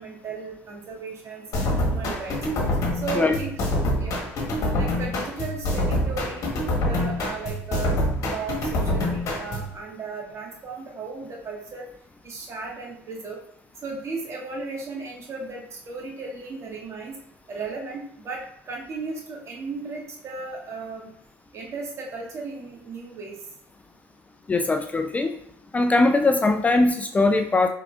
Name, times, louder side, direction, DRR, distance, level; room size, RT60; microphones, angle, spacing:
voice 1, 0.0-2.4 2.9-3.5 4.0-4.2 4.7-11.9 12.2-13.4 13.8-17.1 17.5-21.1 21.5-23.4, right 4 dB, 45° right, -1 dB, 1.5 m, -35 dB
sound 1, 1.5-9.7, left 1 dB, 55° left, 1.2 m, -26 dB
voice 2, 24.5-25.3 25.7-27.7, left 2 dB, 20° left, 6 dB, 0.4 m, -20 dB
4.6 x 3.7 x 2.4 m, 0.64 s
hypercardioid pair, 70°, 7 cm